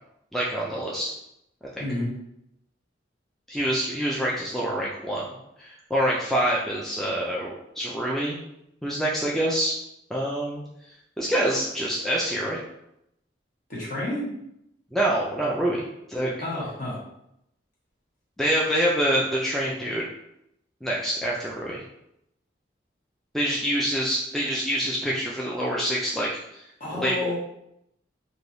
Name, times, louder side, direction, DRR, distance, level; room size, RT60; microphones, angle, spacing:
voice 1, 0.3-1.1 1.8-1.9 3.5-5.2 5.6-8.4 8.8-9.8 10.1-10.6 11.2-12.6 14.9-15.8 16.1-16.3 18.4-20.1 20.8-21.8 23.3-26.6 27.0-27.4, right 1 dB, ahead, -5 dB, 0.3 m, -26 dB
voice 2, 1.8-2.1 13.7-14.3 16.4-17.0 26.8-27.4, left 2 dB, 45° left, -6 dB, 1.2 m, -30 dB
3.3 x 2.6 x 2.6 m, 0.80 s
head